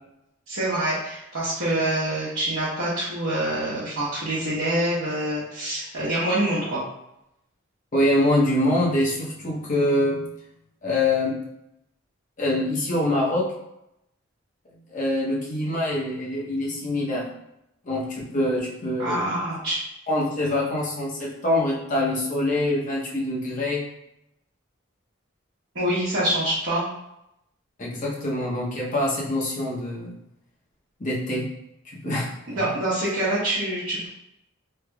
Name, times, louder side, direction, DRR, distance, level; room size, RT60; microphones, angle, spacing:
voice 1, 0.5-6.8 19.0-19.8 25.7-26.8 32.0-32.2 32.5-34.1, right 1 dB, 65° right, -11 dB, 1.0 m, -26 dB
voice 2, 7.9-10.3 10.8-11.4 12.4-13.5 14.9-17.2 17.8-19.2 20.1-23.8 27.8-30.1 31.0-31.5 31.9-32.3, left 1 dB, 40° left, -4 dB, 0.8 m, -24 dB
3.3 x 2.8 x 2.3 m, 0.83 s
head